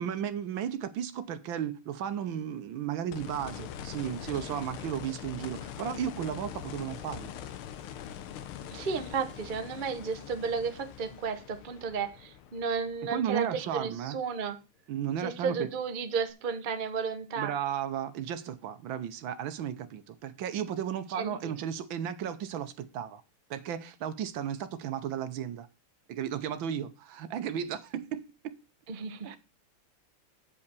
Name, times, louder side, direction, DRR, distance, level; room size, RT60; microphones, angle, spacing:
voice 1, 0.0-7.3 13.1-14.2 14.9-15.7 17.4-23.2 23.5-25.7 26.1-28.5 29.2-29.4, right 9 dB, 70° right, 1.5 m, -34 dB
sound 1, 3.1-14.0 16.3-16.4, left 10 dB, 80° left, 1.7 m, -43 dB
voice 2, 8.7-14.6 15.2-17.5 21.1-21.5 28.9-29.4, right 5 dB, 45° right, 0.6 m, -33 dB
8.3 x 5.3 x 6.8 m
omnidirectional pair, 2.4 m